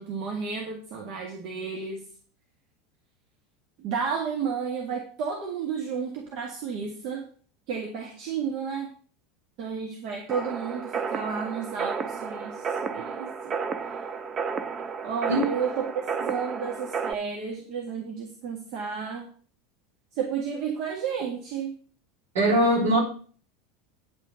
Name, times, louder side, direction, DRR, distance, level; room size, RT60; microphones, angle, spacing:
voice 1, 0.0-2.0 3.8-7.3 7.7-8.9 9.6-13.6 15.0-19.3 20.1-21.7, right 6 dB, 50° right, 1.9 m, -32 dB
sound 1, 10.3-17.1, right 5 dB, 30° right, 0.8 m, -32 dB
voice 2, 22.3-23.0, equal, 70° right, 4.8 m, -21 dB
9.6 x 5.8 x 6.5 m
figure-of-eight pair, 80°, 0 cm